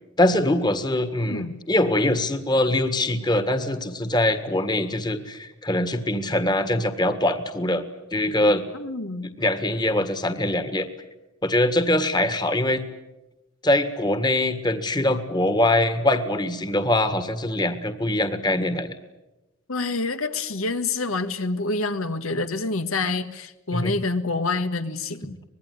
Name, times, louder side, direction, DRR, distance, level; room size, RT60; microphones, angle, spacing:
voice 1, 0.2-7.8 8.1-8.6 9.4-10.9 11.4-12.8 13.6-18.9 23.7-23.9, left 1 dB, 20° left, 10 dB, 1.7 m, -23 dB
voice 2, 1.2-1.6 8.7-9.3 19.7-25.4, left 3 dB, 85° left, 8 dB, 1.7 m, -27 dB
25.0 x 20.5 x 9.6 m, 0.99 s
head